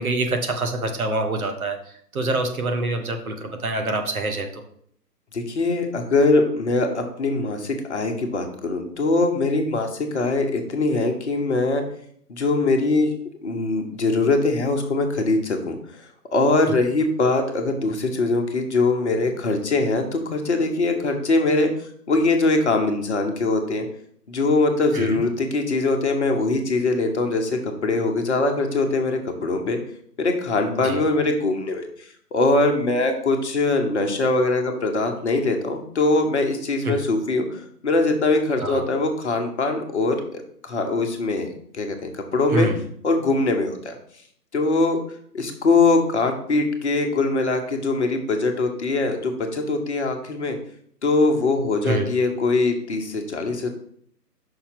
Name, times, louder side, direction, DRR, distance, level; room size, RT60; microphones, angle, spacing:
voice 1, 0.0-1.8 2.1-4.6 24.9-25.2 30.8-31.0 36.8-37.0 38.6-38.8 42.5-42.8 51.8-52.1, right 2 dB, 60° right, 5 dB, 1.3 m, -25 dB
voice 2, 5.3-11.8 12.3-13.1 13.4-15.8 16.3-23.9 24.3-29.8 30.2-42.7 43.0-44.0 44.5-45.0 45.3-50.6 51.0-53.7, left 3 dB, 45° left, 4 dB, 1.1 m, -22 dB
5.8 x 4.3 x 5.8 m, 0.64 s
figure-of-eight pair, 150°, 49 cm